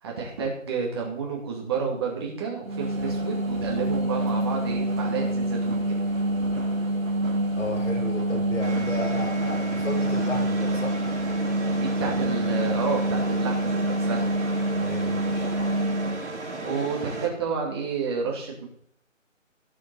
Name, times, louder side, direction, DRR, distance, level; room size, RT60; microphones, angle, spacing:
voice 1, 0.0-6.0 11.7-14.3 16.6-18.7, right 5 dB, 20° right, -1 dB, 2.4 m, -30 dB
sound 1, 2.6-16.2, right 1 dB, 85° right, 2.5 m, -26 dB
voice 2, 7.5-11.0 14.7-15.5, left 2 dB, 65° left, 2 dB, 4.5 m, -34 dB
sound 2, 8.6-17.3, right 2 dB, 60° right, 4.3 m, -35 dB
17.5 x 6.2 x 4.1 m, 0.69 s
figure-of-eight pair, 160°, 39 cm